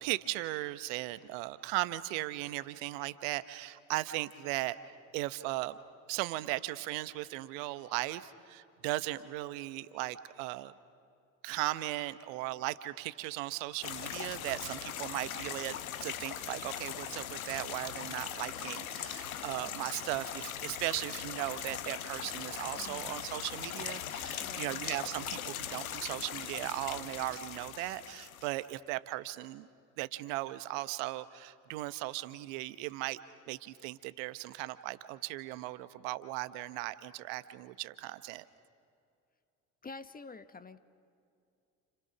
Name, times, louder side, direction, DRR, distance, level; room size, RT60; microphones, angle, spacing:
voice 1, 0.0-4.8 5.1-5.8 6.1-10.7 11.4-29.7 30.0-33.2 33.5-38.4, right 17 dB, 65° right, 14 dB, 1.1 m, -37 dB
sound 1, 13.8-28.6, left 10 dB, 80° left, 1.0 m, -40 dB
voice 2, 22.8-23.1 24.4-24.8 39.8-40.8, left 4 dB, 20° left, 11 dB, 1.4 m, -48 dB
30.0 x 29.5 x 6.1 m, 2.5 s
figure-of-eight pair, 55°, 42 cm